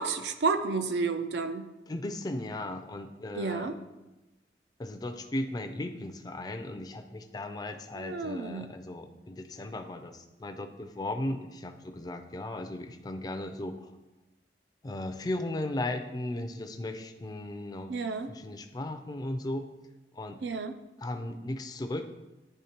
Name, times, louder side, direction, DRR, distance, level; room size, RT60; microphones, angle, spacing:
voice 1, 0.0-1.7 3.3-3.8 8.0-8.7 17.9-18.3 20.4-20.8, right 4 dB, 70° right, 8 dB, 0.4 m, -31 dB
voice 2, 1.9-3.7 4.8-13.9 14.8-19.7 20.1-20.4 21.0-22.1, left 1 dB, 20° left, 6 dB, 0.4 m, -36 dB
9.8 x 3.5 x 2.9 m, 1.0 s
head